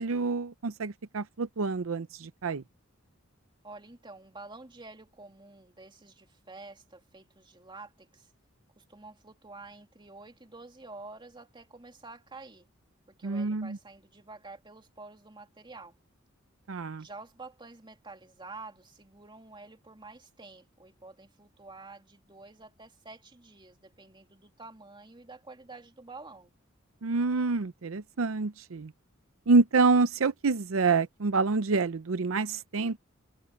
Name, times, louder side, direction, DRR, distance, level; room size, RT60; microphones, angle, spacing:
voice 1, 0.0-2.6 13.2-13.8 16.7-17.0 27.0-28.9 29.5-33.0, right 4 dB, 75° right, 0.6 m, -27 dB
voice 2, 3.6-8.3 8.7-12.7 13.1-16.0 17.0-26.5, right 3 dB, 25° right, 2.9 m, -49 dB
head